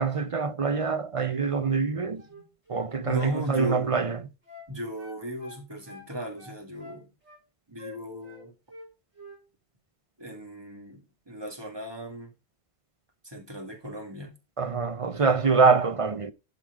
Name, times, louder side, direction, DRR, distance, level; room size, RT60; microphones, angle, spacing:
voice 1, 0.0-2.2 2.7-4.2 14.6-16.3, right 5 dB, 40° right, 0.5 m, -25 dB
Flute - G major - bad-articulation-staccato, 2.2-2.9 3.1-4.7 5.0-6.1 6.4-7.4 7.8-8.9 9.2-9.4, left 3 dB, 85° right, 4.5 m, -46 dB
voice 2, 3.0-4.0 4.7-7.1 7.7-8.5 10.2-12.3 13.2-14.3, equal, 20° right, 2.3 m, -36 dB
12.0 x 4.9 x 5.0 m
omnidirectional pair, 1.2 m